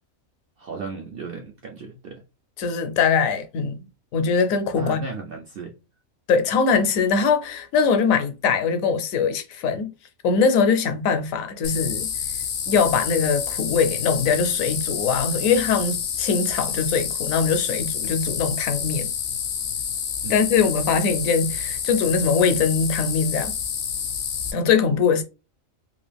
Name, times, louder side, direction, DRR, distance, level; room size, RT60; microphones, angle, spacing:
voice 1, 0.6-2.2 4.8-5.7 20.2-20.4, right 4 dB, 65° right, 0.5 m, -35 dB
voice 2, 2.6-3.8 4.1-5.0 6.3-9.9 10.2-12.1 12.7-19.1 20.3-23.5 24.5-25.2, left 5 dB, 75° left, 1.0 m, -22 dB
sound 1, 11.6-24.5, left 7 dB, 60° left, 0.7 m, -28 dB
2.9 x 2.5 x 3.3 m
omnidirectional pair, 1.4 m